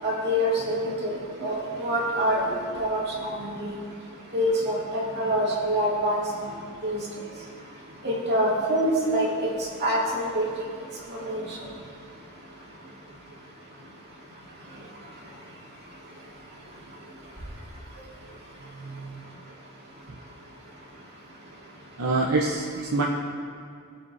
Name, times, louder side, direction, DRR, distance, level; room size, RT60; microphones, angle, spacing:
voice 1, 0.0-3.8 4.3-6.5 6.8-7.0 8.0-9.5 9.8-10.4 11.1-11.6, equal, 50° right, -4 dB, 2.3 m, -26 dB
voice 2, 18.7-19.2 22.0-23.0, right 3 dB, 70° right, -2 dB, 0.8 m, -26 dB
18.5 x 6.7 x 2.6 m, 2.4 s
head